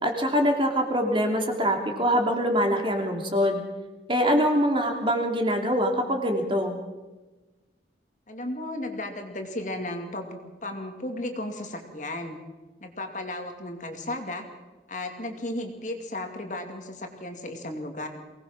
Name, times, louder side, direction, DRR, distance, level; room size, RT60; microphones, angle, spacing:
voice 1, 0.0-3.6 4.1-6.8, equal, 25° right, 3 dB, 2.9 m, -24 dB
voice 2, 8.3-12.4 12.8-14.5 14.9-18.1, left 1 dB, 40° left, 4 dB, 2.4 m, -34 dB
23.5 x 19.0 x 6.1 m, 1.2 s
head